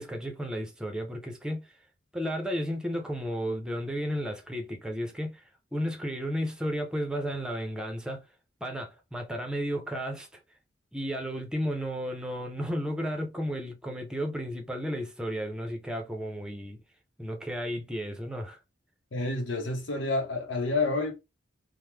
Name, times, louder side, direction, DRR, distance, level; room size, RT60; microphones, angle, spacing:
voice 1, 0.0-1.7 2.1-5.4 5.7-8.2 8.6-10.4 10.9-16.8 17.2-18.6, equal, 5° right, 0.6 m, -33 dB
voice 2, 19.1-21.2, left 3 dB, 80° left, 0.8 m, -29 dB
3.0 x 2.1 x 3.3 m
head